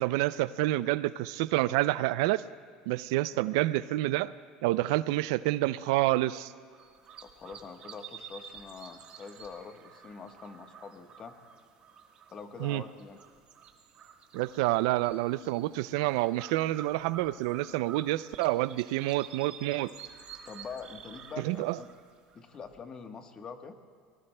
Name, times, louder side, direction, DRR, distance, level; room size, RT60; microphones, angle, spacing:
voice 1, 0.0-2.4 2.9-4.3 4.6-6.5 12.6-12.8 14.3-19.9 21.4-21.8, right 17 dB, 80° right, 17 dB, 0.3 m, -28 dB
sound 1, 6.7-22.8, right 7 dB, 45° right, 1.4 m, -50 dB
voice 2, 7.2-11.3 12.3-13.2 20.4-21.9 22.3-23.8, left 5 dB, 30° left, 6 dB, 1.2 m, -45 dB
24.5 x 20.0 x 2.2 m, 2.1 s
supercardioid pair, 125°, 2 cm